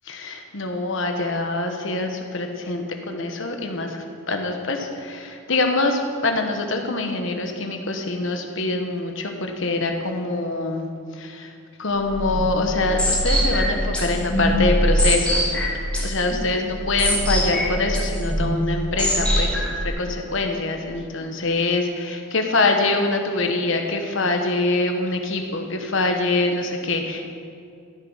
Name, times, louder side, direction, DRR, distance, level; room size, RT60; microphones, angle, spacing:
voice 1, 0.1-10.9 11.1-11.5 11.8-27.3, left 2 dB, 60° left, 4 dB, 1.2 m, -24 dB
sound 1, 12.0-19.9, equal, 5° left, 2.4 m, -23 dB
13.0 x 7.7 x 5.6 m, 2.4 s
head